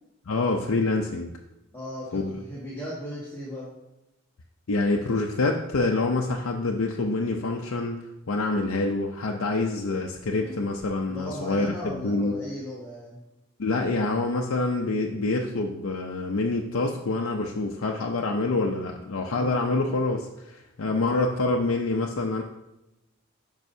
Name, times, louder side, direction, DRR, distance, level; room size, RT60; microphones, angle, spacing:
voice 1, 0.3-1.3 2.1-2.4 4.7-8.0 8.3-12.3 13.6-22.4, left 3 dB, 70° left, 0 dB, 0.6 m, -26 dB
voice 2, 1.7-3.7 10.3-10.6 11.1-13.2, left 1 dB, 10° left, -9 dB, 1.5 m, -37 dB
9.0 x 5.5 x 2.7 m, 0.89 s
head